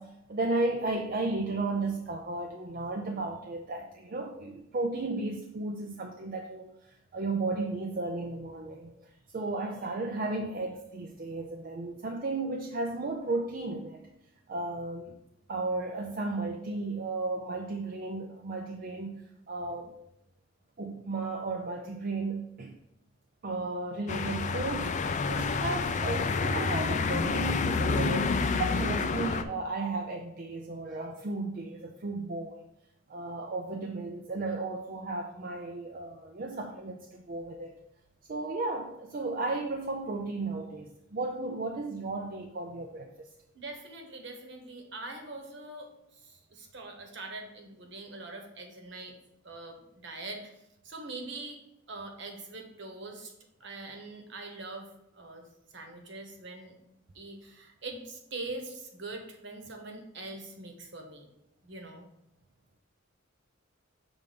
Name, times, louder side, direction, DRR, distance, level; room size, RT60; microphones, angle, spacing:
voice 1, 0.0-14.0 14.5-15.2 15.5-20.0 20.8-22.8 23.4-32.6 33.1-37.7 38.3-43.3, right 2 dB, 45° right, 2 dB, 0.5 m, -34 dB
sound 1, 24.1-29.4, left 4 dB, 35° left, 0.4 m, -28 dB
voice 2, 43.5-45.9 46.2-49.1 49.4-50.5 50.8-51.6 51.9-53.3 53.6-54.9 55.1-55.4 55.7-56.7 57.1-61.3 61.6-62.0, right 2 dB, 65° right, 3 dB, 1.2 m, -43 dB
6.6 x 3.5 x 5.2 m, 0.85 s
head